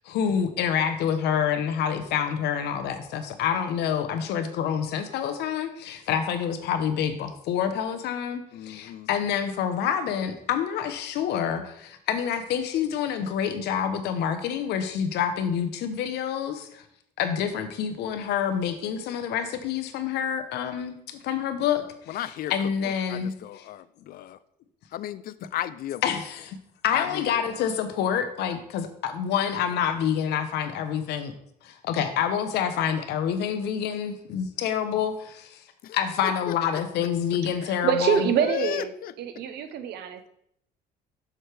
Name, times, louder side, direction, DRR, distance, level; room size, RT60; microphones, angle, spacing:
voice 1, 0.1-16.8 17.2-21.8 22.5-23.3 26.0-26.6 26.8-31.3 31.6-35.6 35.9-38.3, left 8 dB, 80° left, 9 dB, 0.9 m, -27 dB
voice 2, 8.5-9.1 22.1-24.4 24.9-26.0 26.9-27.4 35.8-36.0 36.5-36.8 38.4-39.1, left 12 dB, 60° left, 15 dB, 0.4 m, -35 dB
voice 3, 37.6-38.9 39.2-40.3, right 8 dB, 75° right, 10 dB, 0.8 m, -26 dB
7.7 x 6.4 x 3.4 m, 0.74 s
cardioid pair, 110°, 17 cm